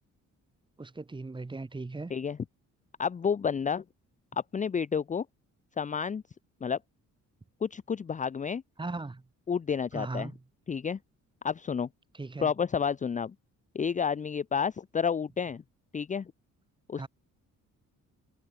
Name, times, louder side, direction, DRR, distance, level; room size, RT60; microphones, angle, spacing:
voice 1, 0.8-2.1 8.8-9.2 9.9-10.4 12.1-12.5 16.9-17.1, right 3 dB, 15° right, 4.1 m, -38 dB
voice 2, 3.0-3.8 4.5-5.3 5.8-6.2 6.6-6.8 7.6-8.6 9.5-10.3 10.7-11.0 11.4-11.9 12.4-13.3 13.7-15.6 15.9-16.3 16.9-17.1, left 6 dB, 25° left, 0.7 m, -30 dB
cardioid pair, 155°, 31 cm